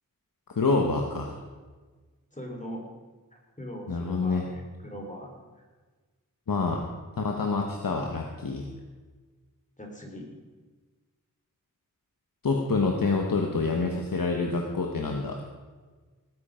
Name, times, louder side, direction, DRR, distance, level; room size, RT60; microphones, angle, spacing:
voice 1, 0.5-1.4 3.9-4.5 6.5-6.9 7.2-8.7 12.4-15.4, left 3 dB, 85° left, 1 dB, 1.3 m, -27 dB
voice 2, 2.3-2.8 3.6-5.3 5.6-5.7 9.8-10.4, equal, 20° left, 1 dB, 3.3 m, -40 dB
18.5 x 9.5 x 5.1 m, 1.4 s
wide cardioid pair, 75°, 33 cm